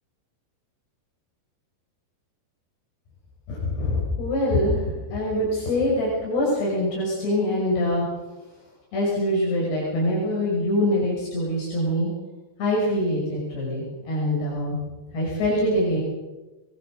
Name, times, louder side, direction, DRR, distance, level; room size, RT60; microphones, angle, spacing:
voice 1, 3.5-3.9 4.2-4.8 5.1-8.0 8.9-12.1 12.6-14.8 15.1-16.0, left 1 dB, 75° left, -5 dB, 8.1 m, -24 dB
23.0 x 22.5 x 6.7 m, 1.2 s
omnidirectional pair, 4.8 m